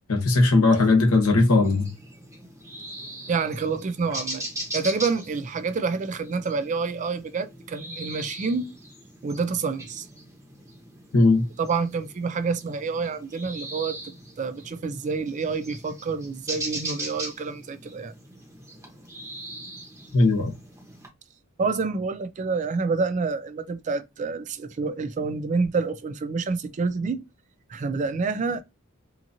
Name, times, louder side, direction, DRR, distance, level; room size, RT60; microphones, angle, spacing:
voice 1, 0.1-1.9 11.1-11.4 20.1-20.5, left 2 dB, 85° left, 1.0 m, -18 dB
sound 1, 1.6-21.1, right 1 dB, 15° right, 0.9 m, -40 dB
voice 2, 3.3-4.4 4.7-8.7 9.2-10.1 11.6-14.0 14.4-18.1 21.6-27.2 27.7-28.6, right 4 dB, 35° right, 0.3 m, -28 dB
2.8 x 2.4 x 2.6 m
head